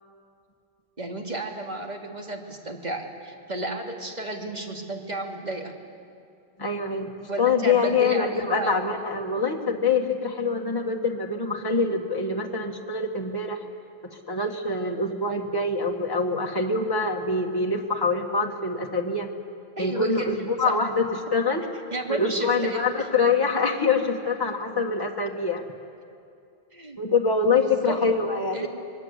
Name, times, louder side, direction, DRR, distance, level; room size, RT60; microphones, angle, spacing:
voice 1, 1.0-5.8 7.3-8.8 19.8-20.7 21.9-23.1 26.7-27.0 27.6-28.0 28.5-28.7, right 2 dB, 45° right, 1 dB, 2.5 m, -33 dB
voice 2, 6.6-7.1 7.4-13.7 14.1-19.3 19.8-21.6 22.1-25.6 27.0-28.7, left 4 dB, 20° left, 1 dB, 1.6 m, -25 dB
26.0 x 21.5 x 8.2 m, 2.4 s
omnidirectional pair, 1.0 m